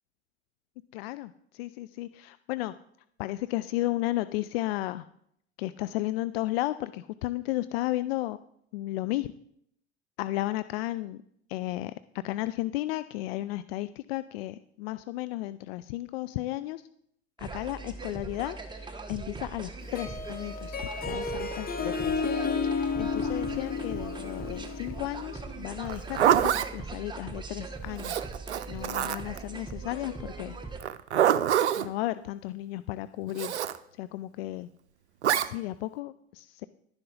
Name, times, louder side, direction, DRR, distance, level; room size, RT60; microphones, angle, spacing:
voice 1, 0.9-2.7 3.2-5.1 5.6-8.4 8.7-9.3 10.2-11.2 11.5-12.0 12.2-16.9 17.4-22.2 23.0-28.3 28.7-30.6 31.8-33.5 34.0-34.7 35.5-36.7, left 17 dB, 60° left, 14 dB, 0.5 m, -34 dB
sound 1, 17.4-30.8, right 3 dB, 15° right, 1.4 m, -40 dB
Harp, 19.8-25.4, left 5 dB, 25° left, 1.3 m, -32 dB
Zipper (clothing), 25.8-26.7 28.0-29.4 30.8-31.9 33.4-33.8 35.2-35.5, right 10 dB, 80° right, 0.6 m, -25 dB
11.5 x 10.5 x 3.9 m, 0.70 s
figure-of-eight pair, 70°, 34 cm